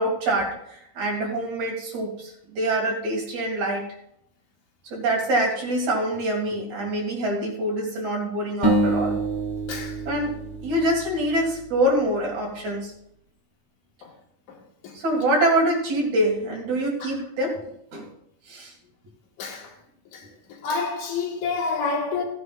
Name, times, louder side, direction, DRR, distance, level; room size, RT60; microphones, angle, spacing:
voice 1, 0.0-3.8 4.9-9.2 10.1-10.3 10.6-12.9 14.9-17.6 17.9-18.0 18.5-18.7, right 1 dB, 65° right, 3.4 m, -25 dB
sound 1, 8.6-11.9, right 2 dB, 5° left, 3.0 m, -27 dB
voice 2, 20.6-22.2, left 4 dB, 75° left, 3.0 m, -27 dB
16.5 x 9.8 x 2.4 m
omnidirectional pair, 3.6 m